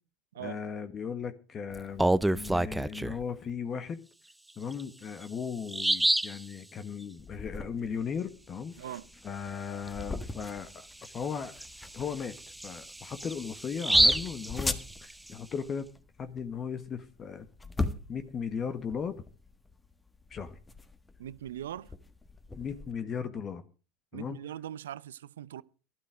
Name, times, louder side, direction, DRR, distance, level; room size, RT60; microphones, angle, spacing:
voice 1, 0.4-4.0 4.6-8.7 9.2-11.6 11.9-12.3 12.6-14.8 15.0-15.9 16.2-17.5 18.1-19.2 20.3-20.6 22.5-23.6 24.1-24.4, left 6 dB, 35° left, 1.4 m, -37 dB
Bird vocalization bird call bird song, 1.8-3.2 4.7-4.8 5.2-5.3 5.7-6.4 9.9-10.0 10.4-10.5 11.0-15.3, right 1 dB, 5° right, 0.6 m, -28 dB
sound 1, 7.2-22.9, left 3 dB, 15° left, 1.6 m, -40 dB
voice 2, 8.8-9.1 21.2-21.9 24.1-25.6, right 11 dB, 80° right, 0.6 m, -41 dB
12.5 x 12.0 x 5.1 m
hypercardioid pair, 80°, 0 cm